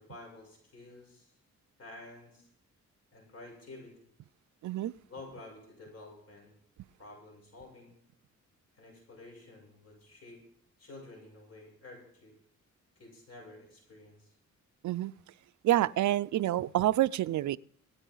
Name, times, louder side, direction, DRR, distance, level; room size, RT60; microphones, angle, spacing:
voice 1, 0.0-1.3 1.8-2.5 3.1-3.9 5.1-6.5 7.0-7.9 8.7-10.4 10.8-12.3 13.0-14.4, left 2 dB, 55° left, 7.5 m, -50 dB
voice 2, 15.6-17.6, right 14 dB, 70° right, 0.5 m, -27 dB
25.5 x 9.0 x 3.9 m
wide cardioid pair, 140°, 30 cm